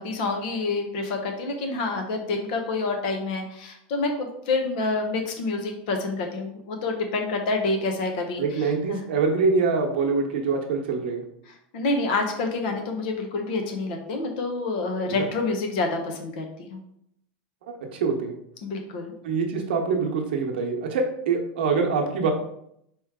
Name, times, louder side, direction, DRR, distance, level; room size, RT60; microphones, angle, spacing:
voice 1, 0.0-9.0 11.5-16.8 18.6-19.1, left 3 dB, 55° left, 4 dB, 0.9 m, -28 dB
voice 2, 8.4-11.2 15.1-15.2 17.9-18.4 19.2-22.3, right 4 dB, 75° right, 2 dB, 0.9 m, -24 dB
4.4 x 3.1 x 3.6 m, 0.75 s
supercardioid pair, 165°, 6 cm